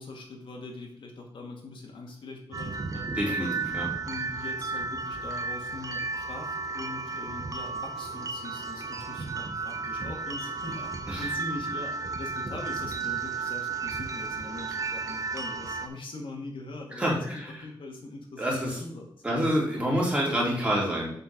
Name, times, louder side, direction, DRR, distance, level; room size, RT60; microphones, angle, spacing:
voice 1, 0.0-3.5 4.0-19.1, left 2 dB, 75° left, 1 dB, 1.8 m, -42 dB
sound 1, 2.5-15.9, right 4 dB, 40° right, 0.7 m, -33 dB
voice 2, 3.2-3.5 3.7-3.9 11.1-11.3 17.0-17.6 18.4-18.8 19.2-21.1, equal, 15° right, -4 dB, 2.9 m, -27 dB
6.8 x 4.5 x 5.8 m, 0.66 s
wide cardioid pair, 125°, 9 cm